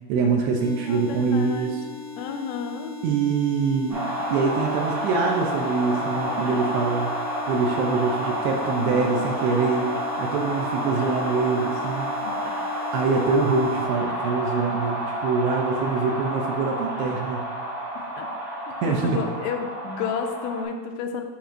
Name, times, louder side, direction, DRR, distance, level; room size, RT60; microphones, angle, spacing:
voice 1, 0.1-1.8 3.0-4.0 4.3-7.1 7.5-9.9 10.2-12.1 12.9-17.4 18.8-19.2, right 4 dB, 80° right, 1 dB, 2.5 m, -24 dB
sound 1, 0.6-13.9, left 6 dB, 60° right, 1.5 m, -39 dB
voice 2, 0.9-1.8 2.2-2.9 8.8-9.3 12.2-12.6 18.2-18.3 18.7-21.2, left 6 dB, 85° left, 5 dB, 2.9 m, -31 dB
sound 2, 3.9-20.6, equal, 30° right, 0.9 m, -30 dB
10.0 x 5.3 x 2.5 m, 1.4 s
omnidirectional pair, 5.1 m